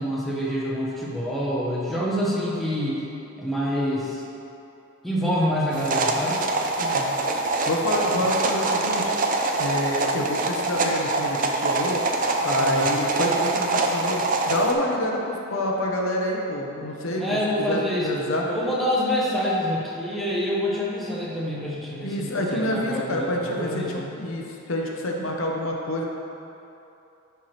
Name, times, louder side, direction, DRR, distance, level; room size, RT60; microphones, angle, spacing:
voice 1, 0.0-3.0 3.4-4.2 5.0-6.4 12.6-12.8 17.2-18.1 18.5-24.1, equal, ahead, -7 dB, 0.9 m, -26 dB
sound 1, 5.7-14.7, right 3 dB, 40° right, 0.4 m, -24 dB
voice 2, 6.8-7.1 7.7-9.1 9.6-12.0 12.4-18.4 22.0-26.0, left 1 dB, 70° left, 0 dB, 0.8 m, -27 dB
10.5 x 4.5 x 3.2 m, 2.9 s
head